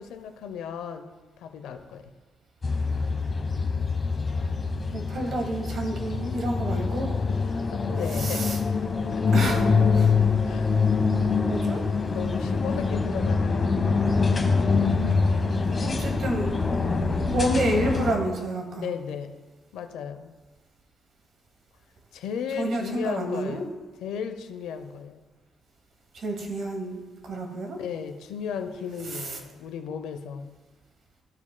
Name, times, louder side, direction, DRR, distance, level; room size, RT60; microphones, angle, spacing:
voice 1, 0.0-2.1 7.3-8.5 9.1-9.3 10.4-10.8 12.1-13.8 18.7-19.4 19.7-20.3 22.1-23.7 24.0-25.2 27.8-30.5, left 7 dB, 85° left, 8 dB, 0.6 m, -35 dB
sound 1, 2.6-18.1, left 4 dB, 30° left, 1.0 m, -25 dB
voice 2, 4.9-7.1 8.2-8.6 9.3-10.2 11.5-11.8 15.7-16.5 17.1-18.9 22.6-23.6 26.1-27.8, right 1 dB, 60° right, 2 dB, 1.5 m, -29 dB
14.5 x 4.9 x 2.2 m, 1.3 s
cardioid pair, 90°, 0 cm